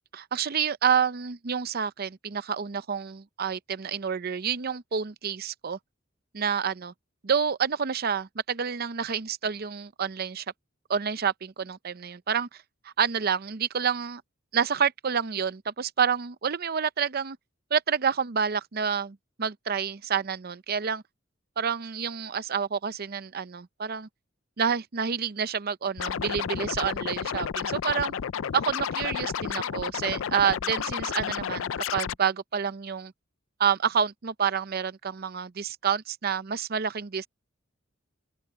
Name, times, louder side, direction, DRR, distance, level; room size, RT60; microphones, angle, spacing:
voice 1, 0.1-5.8 6.3-6.9 7.2-10.4 10.9-14.2 14.5-17.4 17.7-21.0 21.6-24.1 24.6-28.1 28.5-33.1 33.6-37.3, right 7 dB, 50° right, 0.6 m, -28 dB
Scratching (performance technique), 26.0-32.2, left 8 dB, 80° left, 0.4 m, -31 dB
open air
head